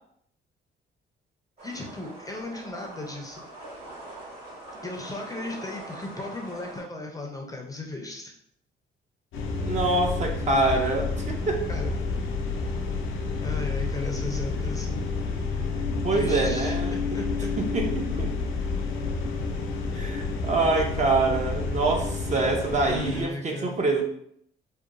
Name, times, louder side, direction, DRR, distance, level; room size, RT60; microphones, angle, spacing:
voice 1, 1.6-3.6 4.8-8.3 11.7-11.9 13.4-15.0 16.1-17.5 22.9-23.8, left 2 dB, 15° left, 1 dB, 0.4 m, -36 dB
sound 1, 1.6-6.8, right 1 dB, 50° right, 1.4 m, -42 dB
sound 2, 9.3-23.2, left 4 dB, 85° left, 0.4 m, -29 dB
voice 2, 9.6-11.7 16.0-17.2 17.6-18.3 19.9-24.0, right 3 dB, 35° right, 2 dB, 0.5 m, -25 dB
2.8 x 2.1 x 2.4 m, 0.69 s
cardioid pair, 90°, 20 cm